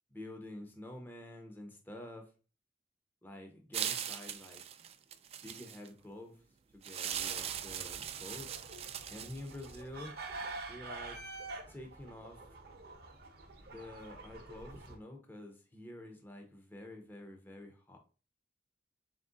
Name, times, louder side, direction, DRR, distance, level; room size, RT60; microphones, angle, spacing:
voice 1, 0.1-2.3 3.2-4.6 5.4-6.4 6.7-8.5 9.1-10.1 10.7-11.2 11.7-12.4 13.7-18.0, left 1 dB, 10° left, 3 dB, 0.6 m, -48 dB
sound 1, 3.7-5.9 6.8-9.8, right 9 dB, 35° right, 0.3 m, -40 dB
sound 2, 7.1-15.0, right 3 dB, 55° right, 0.7 m, -47 dB
3.7 x 3.1 x 3.8 m, 0.36 s
head